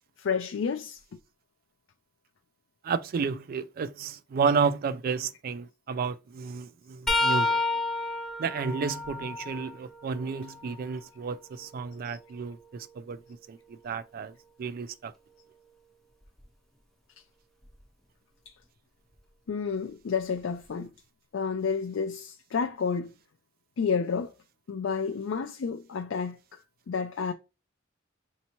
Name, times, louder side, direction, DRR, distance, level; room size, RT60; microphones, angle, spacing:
voice 1, 0.2-1.0 12.0-12.2 18.5-18.6 19.5-20.9 21.3-23.1 23.8-24.3 24.7-26.6 26.9-27.3, left 5 dB, 70° left, 0.4 m, -30 dB
voice 2, 2.8-7.6 8.4-12.6 13.0-13.2 13.5-13.6 13.8-14.3 14.6-15.1, right 5 dB, 50° right, 0.3 m, -31 dB
sound 1, 7.1-10.8 11.4-13.3 16.2-16.4 17.6-17.8 19.1-19.2, left 2 dB, ahead, 0.6 m, -32 dB
5.3 x 2.8 x 2.9 m
head